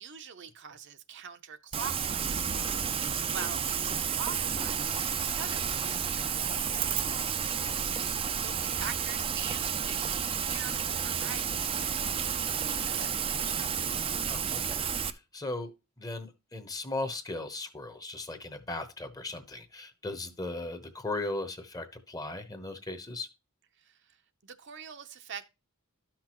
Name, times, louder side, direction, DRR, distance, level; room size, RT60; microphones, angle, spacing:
voice 1, 0.0-6.3 8.3-13.6 20.3-20.5 23.8-25.5, right 7 dB, 55° right, 0.7 m, -44 dB
Rain, 1.7-15.1, right 7 dB, 25° right, 0.5 m, -31 dB
voice 2, 6.8-7.8 14.2-15.7 16.0-23.3, left 2 dB, 15° left, 0.9 m, -38 dB
12.5 x 6.0 x 3.0 m
head